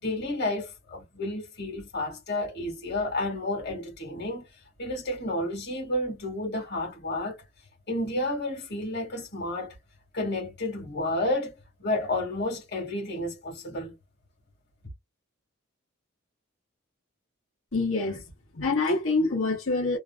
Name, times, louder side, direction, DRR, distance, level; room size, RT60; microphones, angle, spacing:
voice 1, 0.0-4.5 4.8-7.4 7.9-9.8 10.1-11.5 11.8-13.9, left 1 dB, 55° left, 1.7 m, -31 dB
voice 2, 17.7-18.2 18.5-20.0, left 3 dB, 70° left, 1.5 m, -26 dB
3.2 x 2.6 x 2.3 m
head